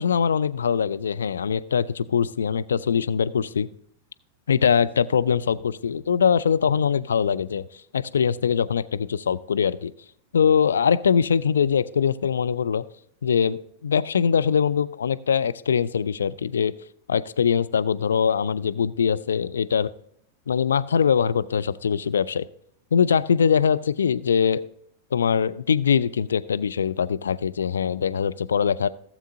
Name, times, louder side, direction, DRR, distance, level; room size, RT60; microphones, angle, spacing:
voice 1, 0.0-3.7 4.5-7.6 7.9-9.9 10.3-12.8 13.2-16.7 17.1-19.9 20.5-22.5 22.9-24.6 25.1-28.9, left 7 dB, 70° left, 13 dB, 0.4 m, -22 dB
16.0 x 7.3 x 2.7 m, 0.69 s
figure-of-eight pair, 90°, 0 cm